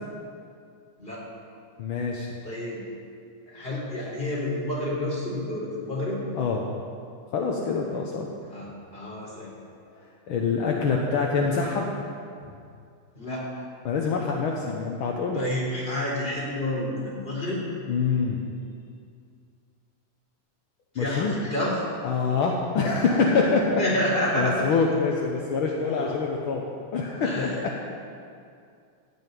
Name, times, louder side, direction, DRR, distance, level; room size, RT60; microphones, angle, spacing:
voice 1, 1.8-2.3 6.4-6.6 7.3-8.3 10.0-11.9 13.8-15.5 17.9-18.4 20.9-21.3 22.0-23.8 24.3-26.6 26.9-27.7, left 4 dB, 65° left, -1 dB, 1.3 m, -25 dB
voice 2, 2.4-2.8 3.5-6.2 8.5-9.5 12.4-12.5 13.1-13.7 15.3-17.6 20.9-21.8 23.8-24.7 25.8-26.2 27.2-27.8, left 1 dB, 15° left, -6 dB, 3.7 m, -29 dB
15.0 x 6.3 x 9.3 m, 2.4 s
omnidirectional pair, 3.5 m